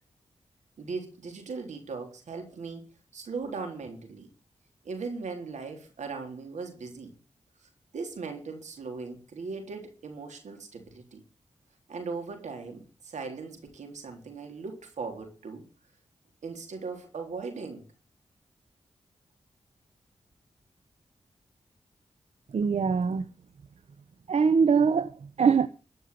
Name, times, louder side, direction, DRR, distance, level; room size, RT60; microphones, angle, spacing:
voice 1, 0.8-2.8 3.1-4.3 4.8-7.1 7.6-11.2 11.9-15.6 16.4-17.8, right 4 dB, 80° right, 3.7 m, -38 dB
voice 2, 22.5-23.3 24.3-25.7, right 6 dB, 65° right, 0.8 m, -23 dB
14.0 x 5.4 x 9.4 m
cardioid pair, 45°, 12 cm